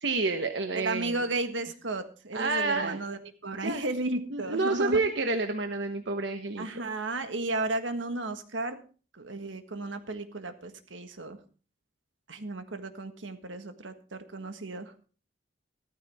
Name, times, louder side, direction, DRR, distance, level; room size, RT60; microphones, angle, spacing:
voice 1, 0.0-1.2 2.3-3.0 3.6-3.8 4.3-6.9, right 3 dB, 70° right, 6 dB, 1.1 m, -29 dB
voice 2, 0.7-5.0 6.6-8.8 9.1-11.4 12.3-14.9, right 2 dB, 85° right, 8 dB, 1.6 m, -34 dB
15.0 x 13.5 x 3.6 m, 0.37 s
head